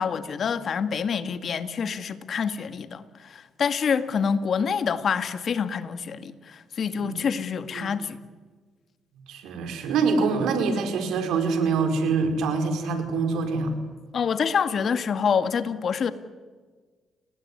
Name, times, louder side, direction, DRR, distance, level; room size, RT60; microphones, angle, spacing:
voice 1, 0.0-8.2 14.1-16.1, left 6 dB, 55° left, 11 dB, 2.0 m, -27 dB
voice 2, 9.3-13.7, right 4 dB, 85° right, 6 dB, 4.9 m, -25 dB
30.0 x 20.5 x 9.8 m, 1.5 s
cardioid pair, 90°, 0 cm